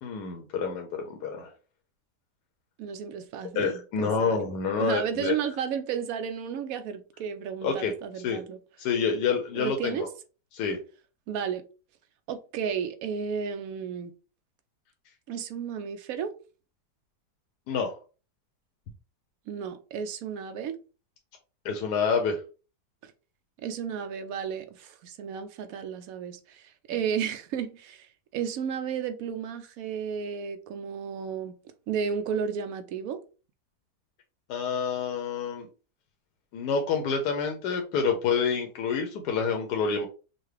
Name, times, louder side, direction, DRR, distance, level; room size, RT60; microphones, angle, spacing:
voice 1, 0.0-1.5 3.6-5.3 7.6-7.9 8.2-8.4 8.8-10.1 10.5-10.8 17.7-17.9 21.6-22.4 34.5-35.7 36.5-40.1, left 5 dB, 75° left, 1.2 m, -28 dB
voice 2, 2.8-4.4 4.8-8.6 9.5-10.1 11.3-11.6 12.3-14.1 15.3-16.3 19.5-20.8 23.0-23.1 23.6-33.2, right 7 dB, 70° right, 0.9 m, -33 dB
5.6 x 2.2 x 3.3 m
omnidirectional pair, 1.8 m